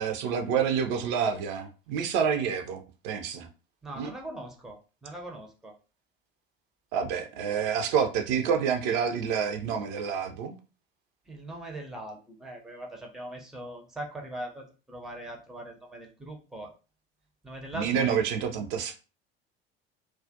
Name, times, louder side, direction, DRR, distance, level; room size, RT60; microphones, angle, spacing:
voice 1, 0.0-3.5 4.0-4.1 6.9-10.6 17.7-19.0, right 7 dB, 50° right, 5 dB, 0.5 m, -28 dB
voice 2, 3.8-5.7 11.3-16.7 17.4-18.2, right 1 dB, ahead, 1 dB, 0.5 m, -41 dB
2.2 x 2.1 x 2.6 m, 0.33 s
figure-of-eight pair, 70°, 31 cm